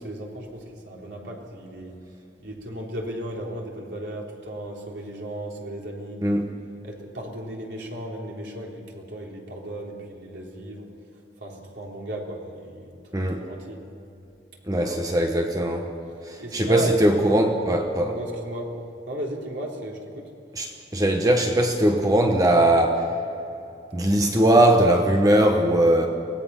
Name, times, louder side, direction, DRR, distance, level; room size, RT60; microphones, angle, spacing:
voice 1, 0.0-2.0 2.4-6.2 6.8-10.9 11.4-13.8 14.7-15.0 16.4-17.0 17.3-17.4 18.0-18.8 19.1-20.3, right 1 dB, 75° right, -1 dB, 3.7 m, -35 dB
voice 2, 14.7-15.8 16.3-18.1 20.5-23.0 23.9-26.1, right 1 dB, 20° right, 3 dB, 1.1 m, -20 dB
25.0 x 18.0 x 5.8 m, 2.7 s
head